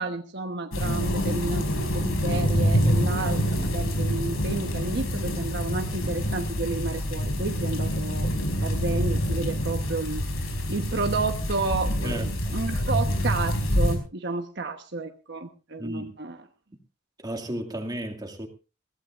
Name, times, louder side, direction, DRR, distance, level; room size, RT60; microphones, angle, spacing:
voice 1, 0.0-8.3 8.6-16.4, right 3 dB, 55° right, 5 dB, 1.1 m, -31 dB
sound 1, 0.7-14.0, equal, 85° left, 4.8 m, -26 dB
voice 2, 12.0-12.6 15.8-16.1 17.2-18.5, right 1 dB, 20° right, 4 dB, 2.2 m, -34 dB
21.5 x 16.0 x 2.5 m, 0.32 s
head